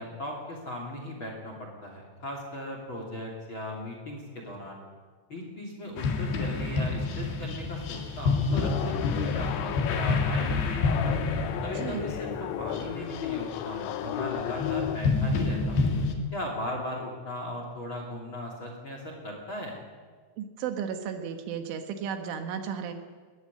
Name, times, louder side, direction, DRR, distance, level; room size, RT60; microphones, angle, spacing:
voice 1, 0.0-4.8 5.3-11.2 11.6-15.9 16.3-19.8, left 1 dB, 30° left, 1 dB, 2.7 m, -37 dB
sound 1, 6.0-13.9 14.6-16.1, left 4 dB, 60° left, 3.6 m, -28 dB
sound 2, 8.5-15.0, left 11 dB, 80° left, 2.7 m, -34 dB
voice 2, 11.8-12.1 20.4-22.9, right 7 dB, 75° right, 6 dB, 3.7 m, -34 dB
21.0 x 13.0 x 9.9 m, 1.5 s
omnidirectional pair, 5.8 m